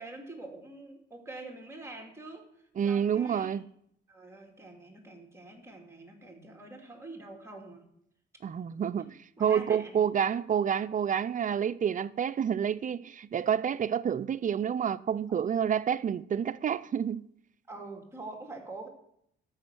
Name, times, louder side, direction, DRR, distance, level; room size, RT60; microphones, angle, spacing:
voice 1, 0.0-3.6 4.1-7.9 9.0-10.0 15.3-15.4 17.7-18.9, right 2 dB, 15° right, 2.8 m, -45 dB
voice 2, 2.8-3.6 8.4-17.2, right 8 dB, 40° right, 0.5 m, -29 dB
13.0 x 6.3 x 6.1 m
cardioid pair, 90°, 20 cm